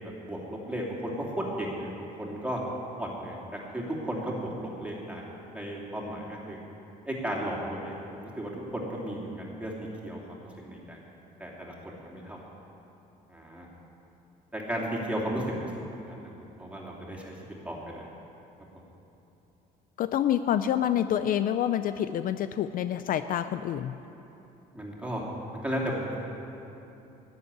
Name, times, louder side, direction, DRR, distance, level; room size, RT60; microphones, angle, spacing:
voice 1, 0.0-2.6 3.0-5.2 5.5-6.6 7.1-9.7 10.0-11.0 11.4-12.4 13.3-13.7 14.5-15.7 16.1-16.3 16.6-17.3 17.6-18.1 24.7-25.2 25.6-26.2, equal, 10° right, -3 dB, 2.8 m, -34 dB
voice 2, 20.0-24.0, left 10 dB, 55° left, 11 dB, 0.4 m, -27 dB
11.0 x 8.1 x 9.9 m, 3.0 s
cardioid pair, 110°, 17 cm